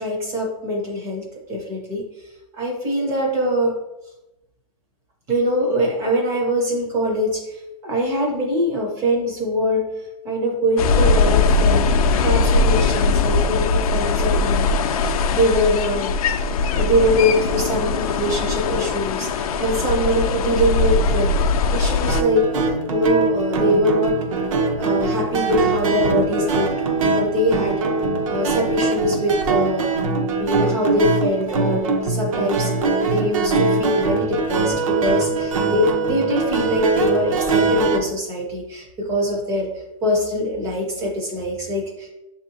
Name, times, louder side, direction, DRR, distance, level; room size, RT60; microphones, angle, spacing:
voice 1, 0.0-2.0 2.5-3.8 5.3-9.9 10.2-16.1 16.7-21.3 21.7-22.5 22.9-24.2 24.8-26.8 27.1-27.8 28.3-29.9 30.4-32.7 33.1-39.7 40.0-42.1, equal, 15° right, 0 dB, 0.5 m, -23 dB
sound 1, 10.8-22.2, left 4 dB, 80° left, 0.4 m, -20 dB
sound 2, 22.1-38.0, right 3 dB, 60° right, 0.7 m, -22 dB
6.6 x 2.7 x 2.7 m, 0.94 s
supercardioid pair, 175°, 19 cm